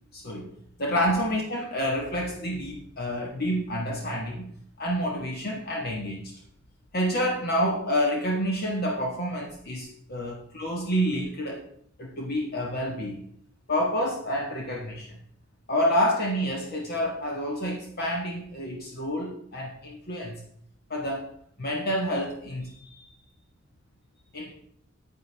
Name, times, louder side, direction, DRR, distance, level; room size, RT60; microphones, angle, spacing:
voice 1, 0.1-0.5 0.8-4.5 4.8-6.3 6.9-11.6 12.0-13.2 13.7-15.2 15.7-20.4 20.9-21.3 21.6-23.1 24.3-24.5, equal, 55° left, -1 dB, 1.5 m, -28 dB
9.5 x 9.1 x 3.4 m, 0.64 s
head